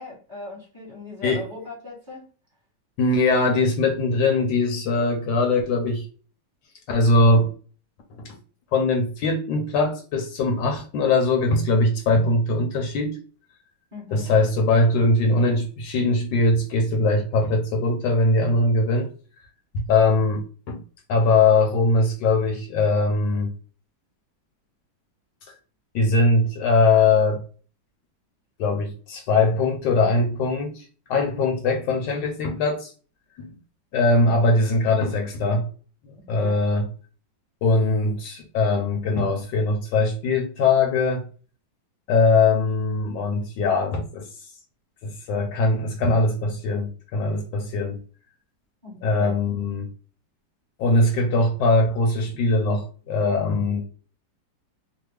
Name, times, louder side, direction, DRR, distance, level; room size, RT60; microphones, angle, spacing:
voice 1, 0.0-2.2 13.9-14.3 36.2-36.6 48.8-49.4, left 2 dB, 30° right, 1.2 m, -38 dB
voice 2, 3.0-6.0 6.9-7.5 8.2-8.4 8.7-13.2 14.1-19.1 19.9-20.8 21.1-23.5 25.9-27.4 28.6-32.9 33.4-33.5 33.9-35.7 36.0-36.9 37.6-41.2 42.1-44.3 45.0-48.0 49.0-49.9 50.8-53.8, left 3 dB, 75° left, 1.3 m, -21 dB
3.3 x 2.1 x 3.2 m
omnidirectional pair, 2.1 m